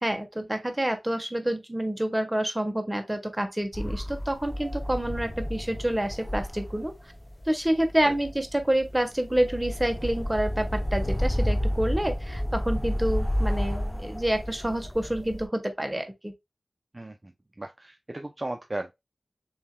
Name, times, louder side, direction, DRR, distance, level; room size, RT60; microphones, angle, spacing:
voice 1, 0.0-6.9 7.5-16.3, right 1 dB, 15° right, 1.3 m, -28 dB
sound 1, 3.7-15.5, equal, 20° left, 0.9 m, -31 dB
voice 2, 16.9-17.3 17.6-18.9, right 2 dB, 35° right, 0.6 m, -35 dB
7.0 x 2.9 x 2.3 m
wide cardioid pair, 45°, 0 cm